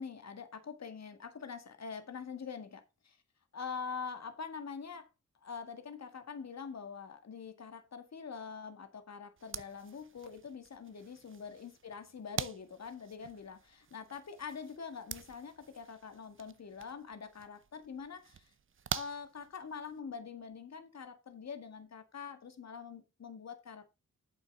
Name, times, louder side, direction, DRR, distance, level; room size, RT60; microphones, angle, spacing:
voice 1, 0.0-3.2 3.5-5.1 5.4-18.5 18.9-23.9, left 6 dB, 60° left, 2.0 m, -44 dB
sound 1, 9.4-20.0, right 7 dB, 45° right, 0.7 m, -46 dB
8.9 x 6.9 x 3.8 m
cardioid pair, 75°, 29 cm